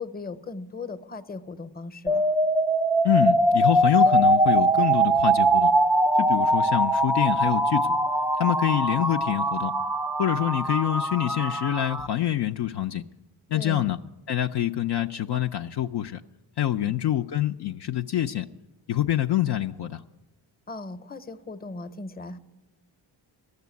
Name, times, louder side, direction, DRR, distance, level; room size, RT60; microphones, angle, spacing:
voice 1, 0.0-2.2 13.5-13.9 16.7-16.9 20.7-22.4, left 3 dB, 20° left, 12 dB, 0.8 m, -37 dB
sound 1, 2.1-12.1, right 1 dB, 5° right, 0.3 m, -22 dB
voice 2, 3.0-5.7 6.2-8.0 8.4-9.7 10.2-13.0 13.5-14.0 14.3-16.2 16.6-18.5 18.9-20.0, left 12 dB, 55° left, 5 dB, 0.5 m, -26 dB
12.5 x 6.7 x 9.4 m, 1.1 s
supercardioid pair, 45°, 49 cm